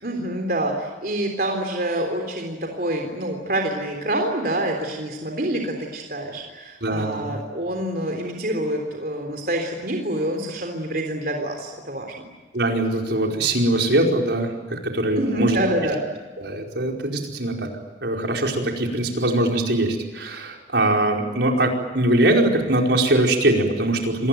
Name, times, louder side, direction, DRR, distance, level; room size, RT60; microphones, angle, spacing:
voice 1, 0.0-12.3 15.1-16.0, right 1 dB, 50° right, 3 dB, 3.7 m, -26 dB
voice 2, 6.8-7.3 12.5-15.6 16.4-17.7 18.0-24.3, right 1 dB, 75° right, 1 dB, 4.9 m, -22 dB
27.5 x 21.0 x 9.3 m, 1.3 s
head